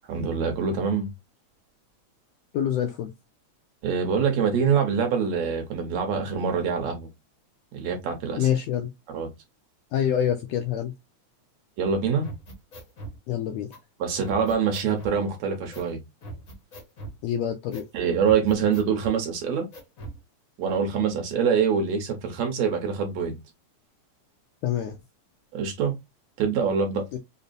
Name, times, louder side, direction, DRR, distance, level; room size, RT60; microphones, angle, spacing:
voice 1, 0.1-1.1 3.8-7.1 7.7-8.5 9.1-9.3 11.8-12.3 14.0-16.0 17.9-19.7 20.6-23.4 25.5-26.0 26.4-27.1, right 6 dB, 70° right, 1.9 m, -25 dB
voice 2, 2.5-3.1 8.4-8.9 9.9-10.9 13.3-13.7 17.2-17.8 24.6-25.0 27.1-27.2, left 10 dB, 80° left, 1.5 m, -26 dB
sound 1, 12.2-13.2 13.7-13.8 14.2-15.2 15.7-15.9 16.2-17.2 17.7-17.9 18.2-19.2 19.7-20.2, right 2 dB, 60° left, 0.8 m, -40 dB
5.4 x 2.0 x 2.5 m
omnidirectional pair, 3.4 m